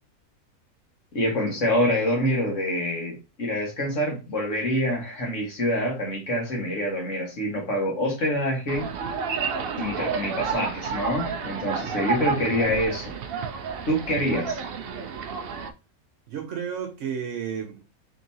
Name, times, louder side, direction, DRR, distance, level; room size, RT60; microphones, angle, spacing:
voice 1, 1.1-8.9 9.7-13.1 13.9-14.6, equal, 55° left, 1.7 m, -26 dB
sound 1, 8.7-15.7, right 5 dB, 80° right, 0.5 m, -31 dB
voice 2, 15.1-15.7 16.3-17.8, right 7 dB, 65° right, 0.9 m, -33 dB
3.8 x 3.7 x 2.7 m
omnidirectional pair, 1.6 m